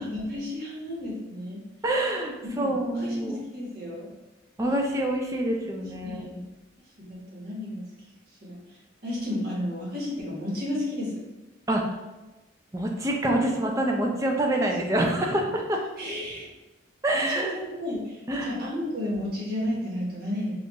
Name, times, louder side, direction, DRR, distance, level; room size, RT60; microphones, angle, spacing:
voice 1, 0.0-1.6 2.4-4.1 5.8-6.4 7.0-8.1 8.4-11.2 14.7-15.0 16.0-16.5 17.1-20.5, left 1 dB, 50° right, -5 dB, 1.2 m, -33 dB
voice 2, 1.8-3.4 4.6-6.3 11.7-11.8 12.7-15.8 17.0-17.6 18.3-18.6, right 1 dB, 15° right, 1 dB, 0.4 m, -26 dB
4.4 x 2.5 x 2.9 m, 1.1 s
head